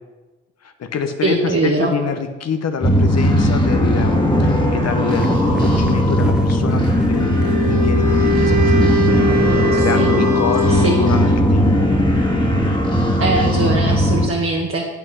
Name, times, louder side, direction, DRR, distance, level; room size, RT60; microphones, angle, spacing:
voice 1, 0.6-9.1 9.6-11.9, left 6 dB, 60° left, 7 dB, 0.9 m, -26 dB
voice 2, 1.2-1.9 9.7-10.1 10.7-11.0 13.2-14.9, right 2 dB, 50° right, -1 dB, 1.3 m, -21 dB
sound 1, 2.8-14.3, equal, 15° left, 1.7 m, -17 dB
sound 2, 5.1-8.6, equal, 5° right, 0.5 m, -27 dB
Wind instrument woodwind instrument, 7.0-11.4, equal, 70° right, 1.2 m, -22 dB
7.7 x 5.6 x 6.1 m, 1.2 s
supercardioid pair, 55°, 29 cm